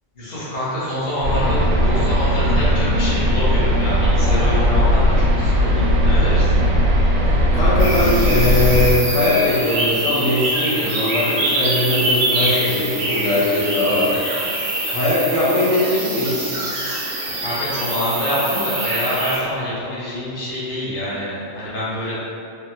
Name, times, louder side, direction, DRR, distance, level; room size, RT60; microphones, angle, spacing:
voice 1, 0.2-6.6 17.2-22.2, equal, 40° left, -10 dB, 0.8 m, -26 dB
sound 1, 1.2-8.9, equal, 80° right, 1.0 m, -17 dB
voice 2, 7.5-14.1 14.9-16.5, left 2 dB, 70° left, -8 dB, 1.0 m, -20 dB
sound 2, 7.8-19.4, right 2 dB, 60° right, 0.8 m, -24 dB
3.4 x 2.1 x 2.6 m, 2.5 s
omnidirectional pair, 1.4 m